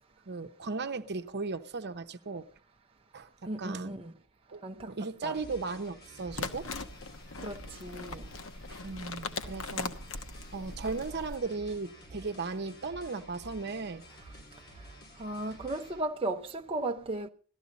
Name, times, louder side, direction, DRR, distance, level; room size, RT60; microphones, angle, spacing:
voice 1, 0.3-2.4 3.1-3.3 3.6-4.0 4.5-6.7 8.7-9.9 10.5-14.0, right 4 dB, 50° right, 0.9 m, -36 dB
voice 2, 3.5-4.1 4.6-4.9 5.2-5.4 7.4-8.3 14.2-14.3 14.8-14.9 15.2-17.3, right 2 dB, 25° right, 0.6 m, -36 dB
sound 1, 5.3-16.0, right 1 dB, 45° left, 3.2 m, -51 dB
sound 2, 6.3-11.4, left 4 dB, 65° left, 1.1 m, -40 dB
17.0 x 13.0 x 4.1 m
head